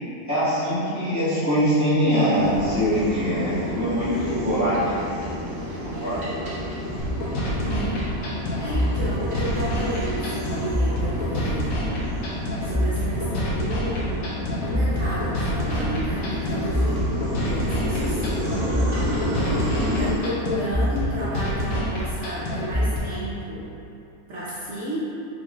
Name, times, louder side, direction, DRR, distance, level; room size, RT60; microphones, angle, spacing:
voice 1, 0.3-5.1 5.8-6.3, equal, 10° left, -16 dB, 1.5 m, -23 dB
sound 1, 2.4-20.1, left 1 dB, 75° right, 1.5 m, -30 dB
sound 2, 7.0-23.0, equal, 75° left, 1.2 m, -26 dB
voice 2, 7.6-8.1 8.4-11.9 12.6-17.0 17.4-18.2 19.4-23.7 24.3-25.0, equal, 60° right, -10 dB, 0.9 m, -32 dB
4.5 x 3.4 x 2.4 m, 2.8 s
omnidirectional pair, 1.5 m